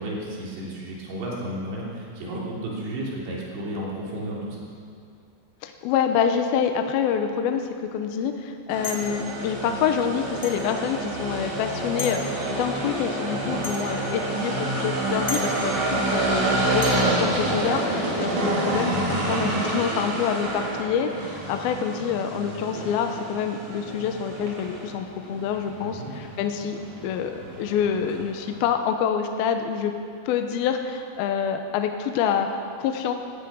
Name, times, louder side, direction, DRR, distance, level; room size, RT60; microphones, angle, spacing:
voice 1, 0.0-4.6 13.4-13.6 25.8-26.1, right 1 dB, 80° right, -4 dB, 5.4 m, -33 dB
voice 2, 5.6-29.9 30.3-33.1, left 7 dB, 75° left, 6 dB, 2.4 m, -27 dB
sound 1, 8.7-28.6, right 2 dB, 45° right, 3.8 m, -28 dB
sound 2, 8.8-9.2 10.4-10.6 12.0-12.2 13.6-13.9 15.3-15.5 16.8-17.0, left 3 dB, 10° left, 1.4 m, -33 dB
17.5 x 13.0 x 6.3 m, 2.4 s
omnidirectional pair, 5.0 m